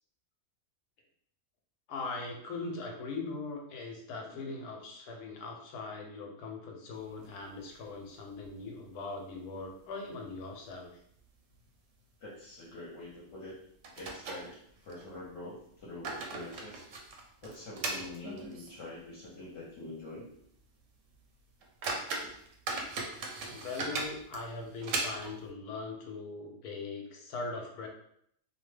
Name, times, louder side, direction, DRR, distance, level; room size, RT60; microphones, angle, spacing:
voice 1, 1.9-10.9 23.5-27.9, left 3 dB, 85° left, 2 dB, 1.1 m, -40 dB
voice 2, 4.1-4.6 8.7-8.8 12.2-13.5 13.9-14.5 14.8-16.8 17.4-20.3 22.3-22.4, left 2 dB, 60° left, -5 dB, 1.0 m, -45 dB
sound 1, 7.1-8.1 8.4-8.5 8.9-9.0 9.6-10.1 10.3-10.5 11.1-11.3 11.6-11.8 13.1-13.2 13.8-15.0 15.7-18.9 19.2-19.3 19.9-20.0 20.4-20.6 21.1-21.2 21.6-25.5, right 3 dB, 70° right, 0.9 m, -38 dB
2.7 x 2.1 x 3.2 m, 0.68 s
omnidirectional pair, 1.6 m